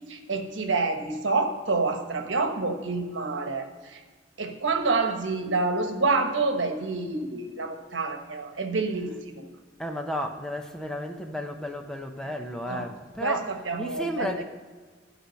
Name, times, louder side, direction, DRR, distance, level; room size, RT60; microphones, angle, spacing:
voice 1, 0.0-4.0 4.4-9.4 12.7-12.9 13.2-14.3, right 3 dB, 80° right, 5 dB, 1.2 m, -28 dB
voice 2, 9.8-14.4, equal, 5° left, 4 dB, 0.7 m, -33 dB
11.0 x 4.9 x 6.4 m, 1.4 s
head